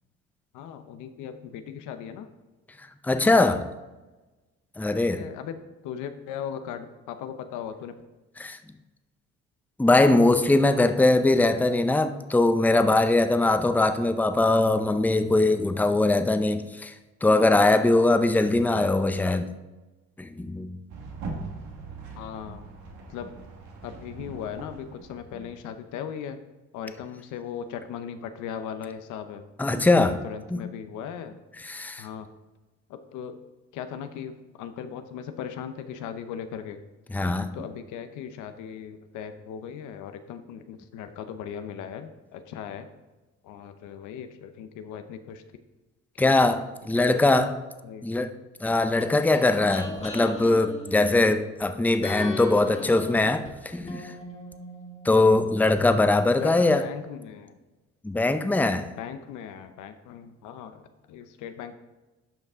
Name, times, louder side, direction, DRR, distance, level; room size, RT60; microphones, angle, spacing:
voice 1, 0.5-2.3 5.2-7.9 22.2-22.6 23.1-23.3 23.8-26.4 26.7-29.4 30.1-31.3 32.0-32.3 32.9-33.4 33.7-36.8 37.5-42.9 43.4-45.4 46.9-47.3 47.8-48.1 56.4-57.6 59.0-61.7, left 8 dB, 85° left, 0.8 m, -38 dB
voice 2, 3.0-3.7 4.8-5.3 8.4-8.6 9.8-16.9 17.2-19.5 20.2-20.8 29.6-30.2 30.5-30.6 31.6-32.1 37.1-37.5 46.2-47.6 48.0-48.3 48.6-54.1 55.0-56.9 58.0-58.9, left 2 dB, 5° left, 0.6 m, -21 dB
sound 1, 20.9-25.7, right 3 dB, 75° right, 1.7 m, -41 dB
sound 2, 48.7-51.6 52.0-55.8 56.1-56.2, left 1 dB, 20° left, 1.8 m, -39 dB
12.0 x 5.4 x 3.6 m
supercardioid pair, 75°, 30 cm